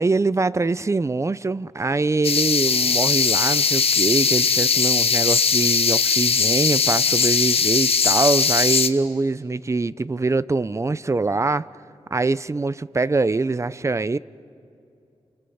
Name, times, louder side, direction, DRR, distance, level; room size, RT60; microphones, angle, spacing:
voice 1, 0.0-11.6 12.1-14.2, right 3 dB, 25° right, 17 dB, 0.6 m, -23 dB
sound 1, 2.2-8.9, left 5 dB, 60° left, 1.0 m, -20 dB
29.5 x 28.5 x 5.7 m, 2.6 s
wide cardioid pair, 85°, 11 cm